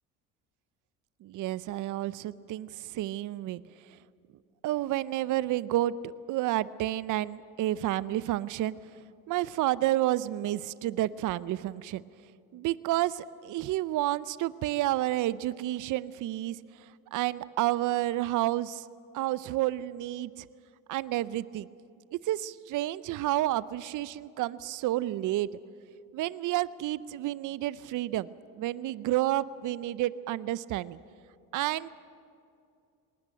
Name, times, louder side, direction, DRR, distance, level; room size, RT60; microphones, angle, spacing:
voice 1, 1.2-3.6 4.6-8.7 9.3-12.0 12.5-16.6 17.1-18.8 19.1-20.5 20.9-21.7 22.2-25.5 26.1-28.3 28.6-31.0 31.5-31.9, right 15 dB, 55° right, 18 dB, 0.7 m, -30 dB
20.0 x 19.0 x 8.9 m, 2.5 s
supercardioid pair, 80°, 36 cm